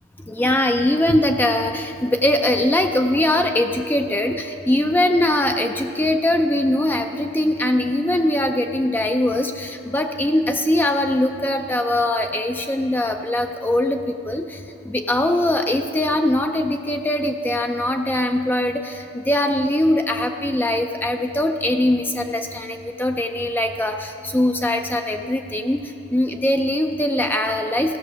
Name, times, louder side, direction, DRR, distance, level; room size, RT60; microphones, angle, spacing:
voice 1, 0.3-25.8 26.1-28.0, left 1 dB, 10° left, 5 dB, 0.4 m, -21 dB
15.5 x 6.9 x 6.2 m, 2.8 s
head